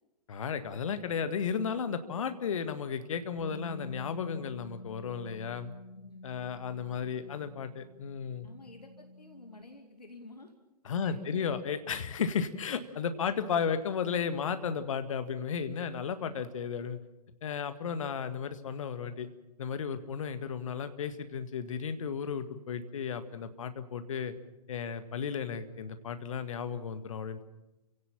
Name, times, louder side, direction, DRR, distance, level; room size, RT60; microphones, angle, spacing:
voice 1, 0.3-5.7 6.2-8.5 10.9-17.0 17.4-19.3 19.6-24.3 24.7-27.4, left 6 dB, 55° left, 10 dB, 1.9 m, -34 dB
Bass guitar, 3.4-9.6, left 2 dB, 35° left, 5.6 m, -48 dB
voice 2, 5.9-6.6 6.9-7.5 8.4-10.5 11.0-11.5, left 2 dB, 75° left, 5 dB, 2.4 m, -52 dB
29.5 x 17.0 x 7.4 m, 1.0 s
figure-of-eight pair, 115°, 20 cm